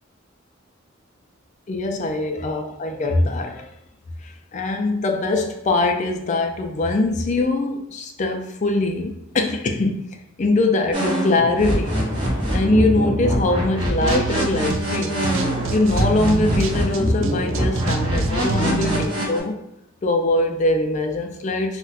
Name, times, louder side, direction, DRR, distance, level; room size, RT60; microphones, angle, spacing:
voice 1, 1.7-3.7 4.2-12.0 12.5-15.3 15.7-19.6 20.0-21.8, left 2 dB, 35° left, 4 dB, 0.4 m, -22 dB
sound 1, 10.9-19.4, equal, 25° right, 0.9 m, -24 dB
sound 2, 13.9-19.1, right 4 dB, 70° right, 0.3 m, -27 dB
2.4 x 2.2 x 3.9 m, 0.79 s
head